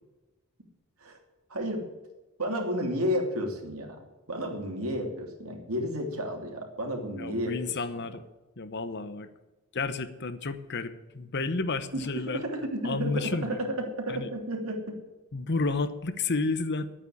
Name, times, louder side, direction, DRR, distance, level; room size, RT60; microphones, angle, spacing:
voice 1, 1.5-1.8 2.4-4.0 4.3-7.5 11.9-15.0, equal, 80° right, 2 dB, 3.0 m, -32 dB
voice 2, 7.2-8.2 8.6-9.3 9.7-12.4 12.8-13.6 14.1-14.3 15.3-16.9, left 3 dB, 55° left, 12 dB, 0.9 m, -31 dB
11.0 x 8.8 x 8.6 m, 1.1 s
head